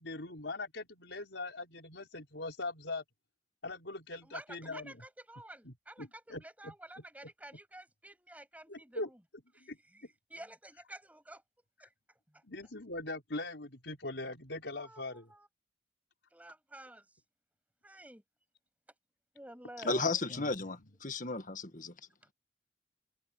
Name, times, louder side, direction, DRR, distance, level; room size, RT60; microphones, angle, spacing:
voice 1, 0.0-3.0 3.6-4.9 5.6-6.7 8.7-9.1 9.6-9.8 12.4-15.3 19.8-20.1, left 2 dB, 80° left, 4.7 m, -41 dB
voice 2, 4.2-9.2 9.5-11.4 11.8-11.9 12.3-12.4 14.8-15.5 16.3-17.1 17.8-18.2 19.3-20.5, right 1 dB, 10° right, 6.8 m, -51 dB
voice 3, 19.8-22.0, left 3 dB, 45° left, 1.8 m, -34 dB
head